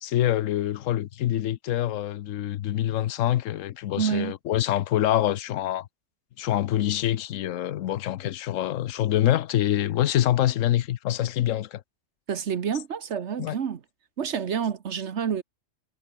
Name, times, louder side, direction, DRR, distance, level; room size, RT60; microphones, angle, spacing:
voice 1, 0.0-5.9 6.4-11.8 13.4-13.6, left 12 dB, 85° left, 1.0 m, -25 dB
voice 2, 4.0-4.3 12.3-13.8 14.2-15.4, right 7 dB, 65° right, 1.3 m, -28 dB
omnidirectional pair, 1.3 m